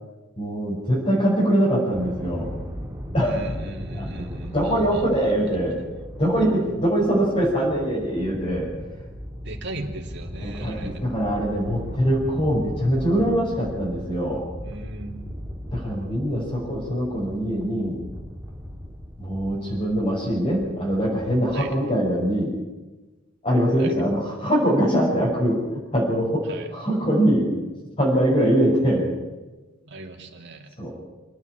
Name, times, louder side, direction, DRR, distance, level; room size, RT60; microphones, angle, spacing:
voice 1, 0.4-2.5 3.1-3.5 4.0-4.3 4.5-5.8 6.2-8.7 10.4-14.5 15.7-18.0 19.2-22.5 23.4-25.7 25.9-27.5 28.0-29.1 30.8-30.9, equal, 35° left, -7 dB, 6.3 m, -23 dB
sound 1, 1.9-21.7, equal, 15° right, 3.5 m, -38 dB
voice 2, 3.2-5.2 9.4-11.0 14.6-15.2 21.5-21.7 23.8-23.9 26.5-26.7 29.8-30.8, right 2 dB, 60° right, 2 dB, 2.8 m, -37 dB
27.5 x 9.9 x 9.9 m, 1.2 s
head